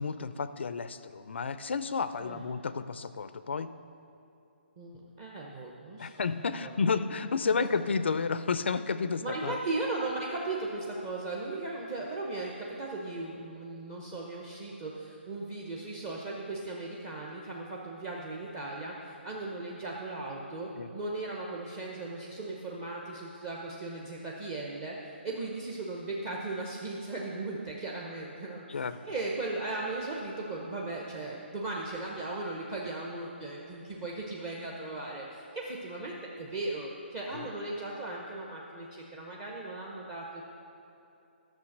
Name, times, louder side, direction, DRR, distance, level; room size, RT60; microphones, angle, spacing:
voice 1, 0.0-3.7 6.0-9.6 20.7-20.9 28.7-29.0 37.3-37.5, left 5 dB, 70° left, 12 dB, 0.5 m, -31 dB
voice 2, 4.8-6.1 6.6-6.8 7.4-7.7 9.2-40.4, right 2 dB, 20° right, -3 dB, 0.8 m, -37 dB
11.5 x 6.6 x 6.5 m, 2.9 s
hypercardioid pair, 165°, 6 cm